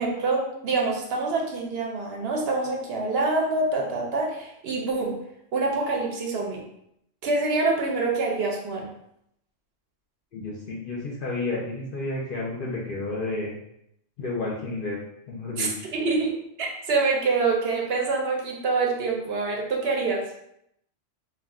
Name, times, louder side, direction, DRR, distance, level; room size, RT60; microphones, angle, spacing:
voice 1, 0.0-5.2 5.5-6.6 7.2-8.9 15.6-16.3 16.6-20.2, right 3 dB, 65° right, 0 dB, 0.7 m, -26 dB
voice 2, 10.3-13.5 14.2-15.0 15.3-15.9, left 2 dB, 60° left, -3 dB, 0.6 m, -31 dB
2.3 x 2.2 x 3.5 m, 0.77 s
omnidirectional pair, 1.3 m